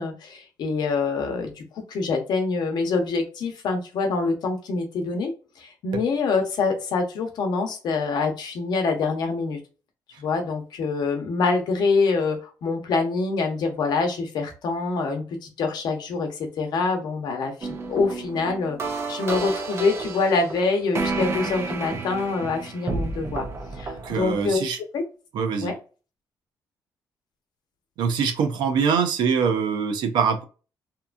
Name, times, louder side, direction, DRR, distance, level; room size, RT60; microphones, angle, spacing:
voice 1, 0.0-5.3 5.6-9.6 10.2-18.8 19.1-23.5 23.7-24.6 24.9-25.0 25.6-25.8, left 4 dB, 70° left, 4 dB, 0.8 m, -25 dB
sound 1, 17.6-24.5, right 3 dB, 35° right, 0.6 m, -31 dB
voice 2, 24.0-24.8 25.3-25.7 28.0-30.4, right 6 dB, 80° right, 6 dB, 0.5 m, -23 dB
2.9 x 2.3 x 2.4 m, 0.35 s
cardioid pair, 125°, 7 cm